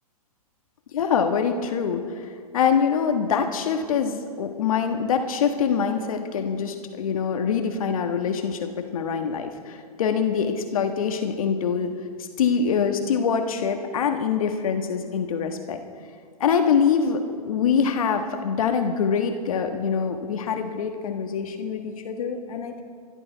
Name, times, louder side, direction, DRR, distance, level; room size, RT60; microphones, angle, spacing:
voice 1, 0.9-2.3 2.5-11.9 12.2-15.8 16.4-22.8, left 6 dB, 65° left, 5 dB, 1.4 m, -24 dB
26.5 x 11.5 x 4.6 m, 2.2 s
hypercardioid pair, 115°, 19 cm